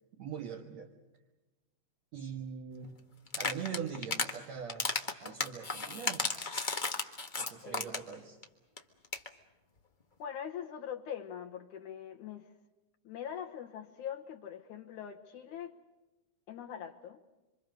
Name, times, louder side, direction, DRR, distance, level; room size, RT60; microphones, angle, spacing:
voice 1, 0.2-0.9 2.1-3.0 3.4-4.9 5.2-6.3 7.4-8.4, right 7 dB, 60° right, 3 dB, 2.5 m, -42 dB
sound 1, 3.3-4.3 4.7-8.1 8.4-8.5 8.8-8.9 9.0-9.3, left 3 dB, 45° left, 0.6 m, -34 dB
voice 2, 10.2-12.5 13.0-15.8 16.5-17.2, left 9 dB, 75° left, 3 dB, 2.5 m, -42 dB
27.0 x 26.0 x 6.5 m, 1.1 s
omnidirectional pair, 3.7 m